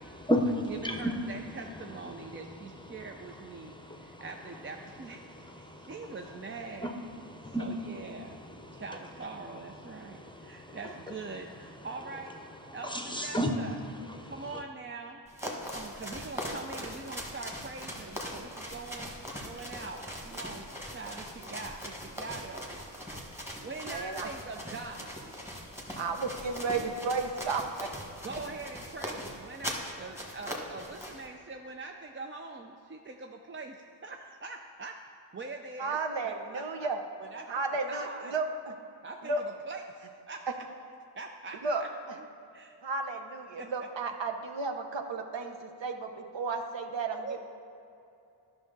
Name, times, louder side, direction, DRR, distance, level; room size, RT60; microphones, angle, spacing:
voice 1, 0.0-1.3 2.1-4.3 5.3-6.3 6.8-8.8 9.8-10.8 11.1-11.2 11.7-11.9 12.8-13.6 13.9-14.6, equal, 10° left, 4 dB, 0.7 m, -35 dB
voice 2, 0.7-3.7 4.0-6.9 7.6-8.4 8.7-12.4 12.7-13.8 14.2-15.2 15.7-22.8 23.6-25.2 28.2-35.0 35.3-36.0 36.2-36.9 37.2-37.6 37.9-38.3 39.0-40.4 41.2-41.9 42.2-42.3 42.5-42.8 43.6-43.9 47.2-47.4, right 3 dB, 25° right, 3 dB, 0.4 m, -43 dB
sound 1, 15.3-31.3, equal, 5° right, 1.4 m, -41 dB
voice 3, 23.9-24.3 26.0-27.9 35.8-37.0 37.5-38.7 39.2-39.4 41.6-41.8 42.8-47.4, right 4 dB, 65° right, 5 dB, 0.8 m, -33 dB
11.0 x 6.0 x 3.9 m, 2.7 s
cardioid pair, 75°, 48 cm